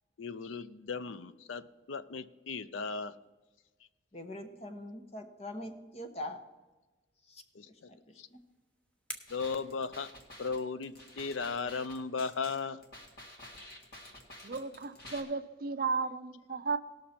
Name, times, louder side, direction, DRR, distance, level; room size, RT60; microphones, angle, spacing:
voice 1, 0.2-3.2 7.5-7.9 8.2-8.3 9.3-10.1 10.4-12.8, left 4 dB, 85° left, 14 dB, 0.5 m, -36 dB
voice 2, 4.1-6.4 7.3-7.4 7.9-8.0 8.3-8.4, left 1 dB, 30° left, 7 dB, 1.0 m, -42 dB
sound 1, 8.0-10.7, right 1 dB, 5° left, 1.0 m, -50 dB
sound 2, 9.3-15.2, left 1 dB, 50° left, 1.9 m, -50 dB
voice 3, 14.4-16.8, right 4 dB, 50° right, 12 dB, 0.5 m, -34 dB
18.5 x 6.5 x 4.3 m, 1.2 s
head